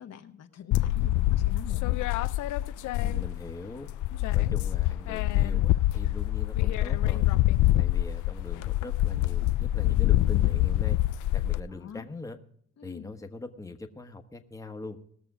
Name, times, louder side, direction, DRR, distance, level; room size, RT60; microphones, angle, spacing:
voice 1, 0.0-2.1 4.1-4.3 11.7-12.1 12.8-13.1, left 8 dB, 60° left, 6 dB, 1.2 m, -46 dB
sound 1, 0.7-3.6 3.9-11.6, left 15 dB, 80° left, 0.4 m, -25 dB
voice 2, 3.0-3.9 4.3-7.3 7.7-11.0 11.3-12.4 12.8-15.0, left 3 dB, 10° left, 4 dB, 1.2 m, -42 dB
20.0 x 6.8 x 4.9 m, 0.66 s
cardioid pair, 90°, 30 cm